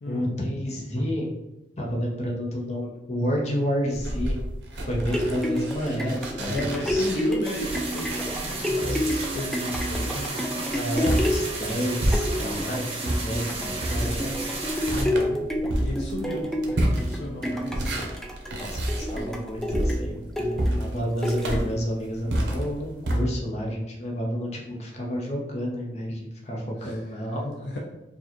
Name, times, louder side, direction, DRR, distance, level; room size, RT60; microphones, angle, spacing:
voice 1, 0.0-1.3 1.8-4.4 4.9-7.1 10.7-14.4 18.6-27.7, equal, 40° left, -2 dB, 0.8 m, -30 dB
sound 1, 3.9-12.7 13.0-23.2, right 1 dB, 85° right, 0.8 m, -30 dB
sound 2, 4.8-21.9 22.5-22.6, equal, 5° left, 0.3 m, -30 dB
voice 2, 6.4-8.1 8.3-10.4 14.9-15.4 15.7-18.1 26.8-27.0 27.6-27.8, left 1 dB, 65° left, -1 dB, 0.5 m, -34 dB
sound 3, 7.4-15.0, right 3 dB, 35° right, 0.9 m, -34 dB
4.7 x 2.4 x 2.9 m, 0.97 s
head